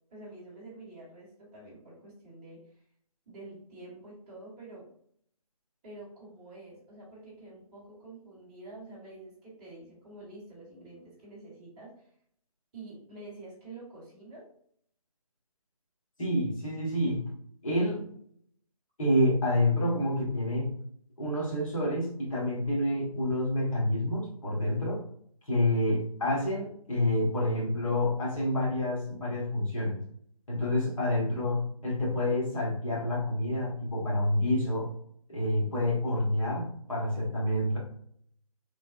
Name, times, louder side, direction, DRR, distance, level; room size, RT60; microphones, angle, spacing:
voice 1, 0.1-2.6 3.3-4.9 5.8-12.1 12.7-14.4, right 2 dB, 10° right, -8 dB, 0.9 m, -47 dB
voice 2, 16.2-17.3 17.6-18.1 19.0-20.7 21.2-25.0 25.5-30.0 30.5-34.9 35.3-37.8, left 1 dB, 60° left, -5 dB, 1.4 m, -28 dB
3.3 x 2.1 x 2.3 m, 0.63 s
figure-of-eight pair, 145°, 19 cm